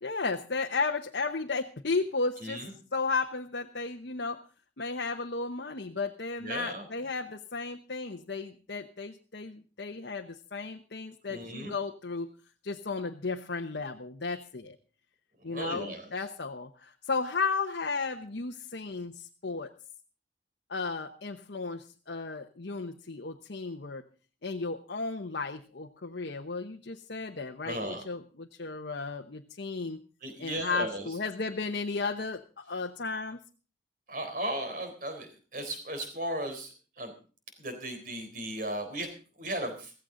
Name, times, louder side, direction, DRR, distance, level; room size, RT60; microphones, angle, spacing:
voice 1, 0.0-2.6 2.9-4.4 4.8-12.4 12.6-14.8 15.4-19.7 20.7-24.0 24.4-30.0 30.4-33.4, left 4 dB, 65° left, 3 dB, 1.0 m, -34 dB
voice 2, 2.4-2.7 6.4-6.9 11.3-11.7 15.4-16.3 27.6-28.0 30.2-31.1 34.1-37.1 37.6-39.1 39.4-39.9, right 1 dB, 45° right, 6 dB, 3.9 m, -36 dB
16.0 x 15.0 x 3.9 m, 0.37 s
head